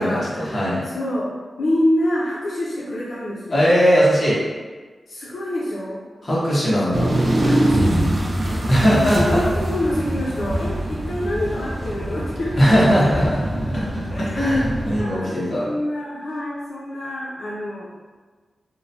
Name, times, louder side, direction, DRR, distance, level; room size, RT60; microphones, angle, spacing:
voice 1, 0.0-1.3 1.6-3.6 5.1-6.0 7.4-13.2 14.1-14.5 15.0-17.9, left 1 dB, 75° left, -6 dB, 0.4 m, -27 dB
voice 2, 3.5-4.4 6.2-7.1 8.7-9.4 12.6-15.6, equal, 35° left, -8 dB, 0.9 m, -19 dB
sound 1, 6.9-15.0, right 1 dB, 40° right, 0.3 m, -23 dB
2.9 x 2.0 x 2.6 m, 1.4 s
wide cardioid pair, 145°, 0 cm